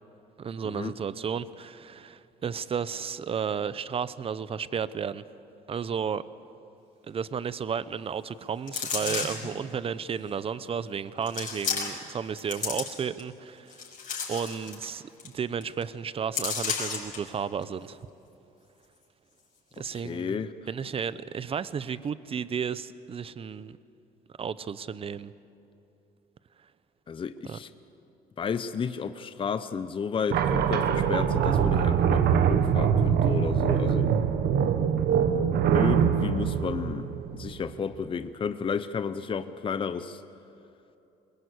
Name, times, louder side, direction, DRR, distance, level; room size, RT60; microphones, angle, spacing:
voice 1, 0.4-5.2 5.7-6.2 7.1-13.8 14.3-18.0 19.8-20.4 20.7-23.8 24.4-25.3 27.4-27.6, right 7 dB, 35° right, 16 dB, 0.7 m, -33 dB
sound 1, 8.7-9.5 10.3-10.4 11.3-12.1 12.4-13.2 13.7-14.9 15.2-15.3 15.6-15.8 16.3-17.2 17.6-17.7, left 6 dB, 50° left, 5.8 m, -32 dB
voice 2, 19.9-20.5 27.1-27.7 28.4-34.1 35.7-37.1 37.3-40.2, left 6 dB, 30° left, 11 dB, 0.8 m, -32 dB
sound 2, 30.3-37.7, right 8 dB, 70° right, 1.4 m, -23 dB
22.5 x 20.5 x 8.3 m, 2.8 s
cardioid pair, 110°, 17 cm